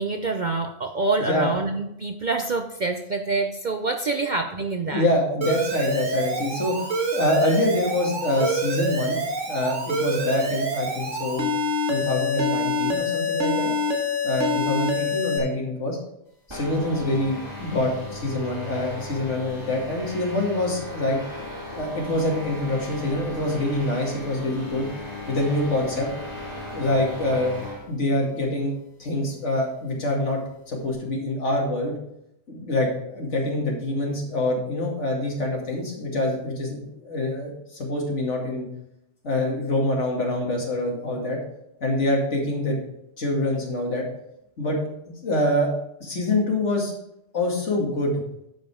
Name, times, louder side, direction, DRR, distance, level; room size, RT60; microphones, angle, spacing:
voice 1, 0.0-5.1, right 3 dB, 45° right, 5 dB, 0.7 m, -26 dB
voice 2, 1.3-1.6 4.9-6.8 7.1-9.2 9.5-11.4 11.9-13.7 14.2-16.0 16.5-21.2 21.8-24.9 25.3-26.1 26.7-27.6 27.9-28.7 29.0-30.4 30.7-31.9 32.5-38.6 39.2-41.4 41.8-42.8 43.2-44.0 44.6-44.8 45.2-45.7 46.0-47.0 47.3-48.2, left 1 dB, 70° left, -1 dB, 2.6 m, -25 dB
Alarm, 5.4-15.4, left 1 dB, 75° right, 1.9 m, -26 dB
sound 1, 16.5-27.9, left 1 dB, 20° right, 2.9 m, -37 dB
11.5 x 5.2 x 4.9 m, 0.80 s
omnidirectional pair, 1.3 m